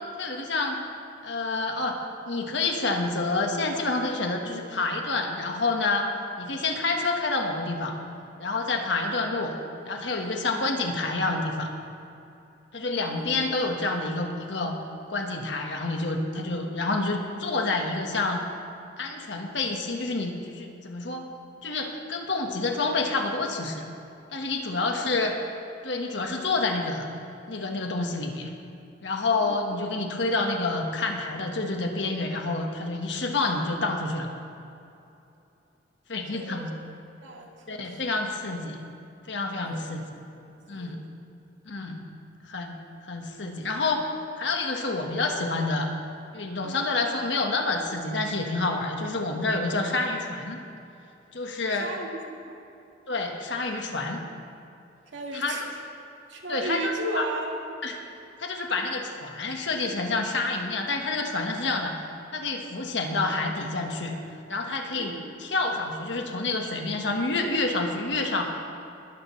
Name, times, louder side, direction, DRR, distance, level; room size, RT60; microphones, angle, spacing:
voice 1, 0.2-0.8 1.2-6.1 6.4-8.0 8.4-9.5 9.8-11.7 12.7-14.8 15.1-18.4 19.0-21.3 21.6-23.9 24.3-25.4 25.8-27.1 27.5-28.5 29.0-34.3 36.1-36.7 37.7-38.8 39.3-40.0 40.7-41.1 41.6-42.1 42.4-44.1 44.4-45.9 46.3-50.6 51.3-51.9 53.1-54.2 55.3-55.5 56.5-57.2 57.8-58.0 58.4-61.9 62.3-64.1 64.5-68.5, left 3 dB, 70° left, 2 dB, 1.5 m, -28 dB
voice 2, 24.7-25.2 29.4-29.6 36.3-36.6 37.2-38.2 39.6-39.8 40.3-41.0 46.6-46.9 49.9-50.0 51.8-52.6 55.1-55.8 56.3-57.6 64.9-65.4, right 2 dB, 80° right, 0 dB, 1.9 m, -36 dB
21.0 x 12.5 x 3.3 m, 2.7 s
head